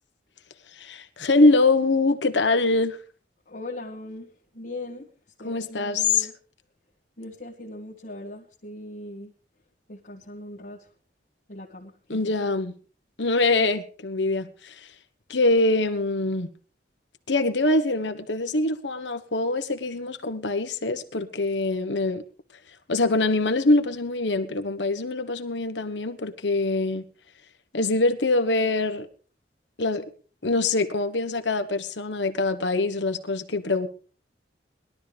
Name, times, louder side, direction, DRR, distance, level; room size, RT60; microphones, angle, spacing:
voice 1, 0.7-3.0 5.4-6.3 12.1-12.7 13.2-14.9 15.3-16.5 17.3-22.2 22.9-27.1 27.7-29.1 29.8-30.1 30.4-33.9, left 2 dB, 80° left, 1.3 m, -24 dB
voice 2, 3.5-5.1 5.4-6.3 7.2-9.3 9.9-10.9 11.5-12.2, left 1 dB, 50° left, 1.9 m, -39 dB
20.5 x 12.5 x 3.5 m
head